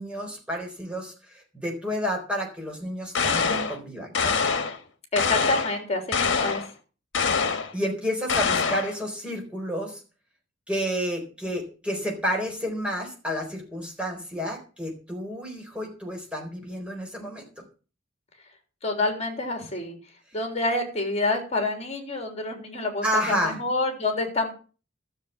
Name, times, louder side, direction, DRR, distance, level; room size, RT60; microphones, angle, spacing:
voice 1, 0.0-4.4 7.7-10.0 10.7-17.6 23.0-23.6, equal, 5° right, 0 dB, 4.2 m, -30 dB
sound 1, 3.1-3.8 4.1-4.8 5.2-5.8 6.1-6.7 7.1-7.7 8.3-8.9, left 5 dB, 65° left, 1.5 m, -24 dB
voice 2, 5.1-6.6 18.8-20.0 20.3-24.5, left 2 dB, 35° left, 4 dB, 3.4 m, -27 dB
13.0 x 7.2 x 7.2 m, 0.37 s
head